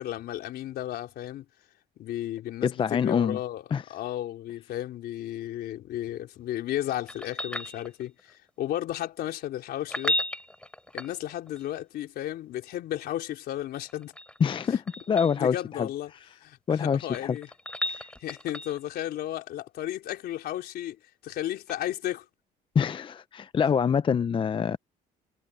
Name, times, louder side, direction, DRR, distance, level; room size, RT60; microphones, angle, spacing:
voice 1, 0.0-1.4 2.0-3.6 3.9-10.2 10.9-14.1 15.3-16.1 16.4-17.5 18.2-21.0 21.2-22.2, left 13 dB, 70° left, 4.0 m, -34 dB
voice 2, 2.6-3.4 3.7-3.8 14.4-15.9 16.7-17.4 17.9-18.1 22.7-24.8, left 7 dB, 30° left, 0.6 m, -26 dB
sound 1, 7.1-8.3 9.8-11.6 13.8-15.4 16.8-18.9 21.7-21.8, left 1 dB, 5° left, 3.8 m, -34 dB
cardioid pair, 110°, 17 cm